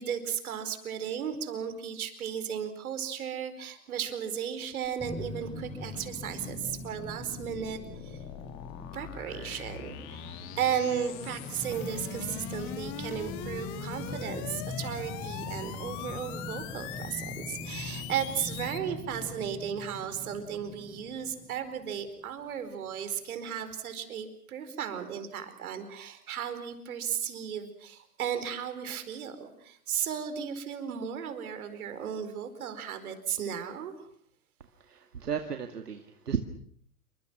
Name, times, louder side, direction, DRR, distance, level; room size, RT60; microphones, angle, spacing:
voice 1, 0.0-8.2 8.9-34.1, right 8 dB, 65° right, 9 dB, 4.7 m, -35 dB
sound 1, 4.8-18.8, left 11 dB, 40° left, 2.8 m, -43 dB
sound 2, 5.0-22.2, left 2 dB, 10° left, 4.1 m, -41 dB
voice 2, 34.6-36.4, right 7 dB, 85° right, 6 dB, 2.1 m, -34 dB
28.0 x 25.0 x 6.1 m, 0.63 s
hypercardioid pair, 120°, 45 cm